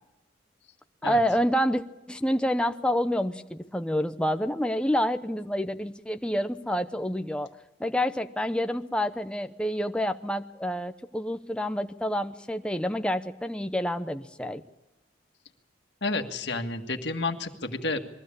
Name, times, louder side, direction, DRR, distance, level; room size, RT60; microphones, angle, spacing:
voice 1, 1.0-1.8 2.1-7.5 7.8-14.6, equal, 5° left, 8 dB, 0.7 m, -28 dB
voice 2, 16.0-18.0, left 3 dB, 65° left, 5 dB, 1.8 m, -30 dB
21.5 x 15.5 x 8.6 m, 1.0 s
head